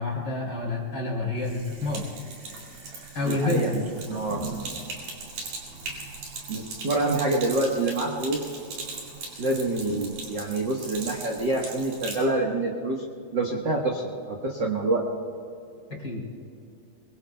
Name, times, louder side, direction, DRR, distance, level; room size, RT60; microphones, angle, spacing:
voice 1, 0.0-2.0 3.1-4.2 15.9-16.2, left 2 dB, 30° left, -2 dB, 3.3 m, -29 dB
Sink (filling or washing), 1.3-12.3, right 3 dB, 70° right, 4.2 m, -39 dB
voice 2, 3.2-3.8 4.1-4.4 6.5-8.4 9.4-13.0 13.3-15.0, right 2 dB, 50° right, -1 dB, 1.4 m, -26 dB
24.0 x 22.5 x 2.3 m, 2.5 s
omnidirectional pair, 3.9 m